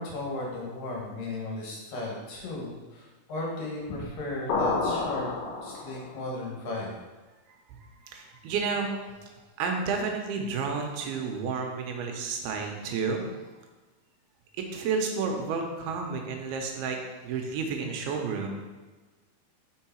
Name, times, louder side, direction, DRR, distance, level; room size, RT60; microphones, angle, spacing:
voice 1, 0.0-5.3 5.6-6.9, left 2 dB, 65° left, -3 dB, 2.8 m, -35 dB
sound 1, 4.5-6.2, left 3 dB, 90° left, 3.0 m, -29 dB
voice 2, 7.8-9.2 9.6-13.3 14.7-18.5, right 5 dB, 90° right, 3 dB, 2.7 m, -31 dB
6.1 x 4.7 x 4.4 m, 1.2 s
omnidirectional pair, 4.5 m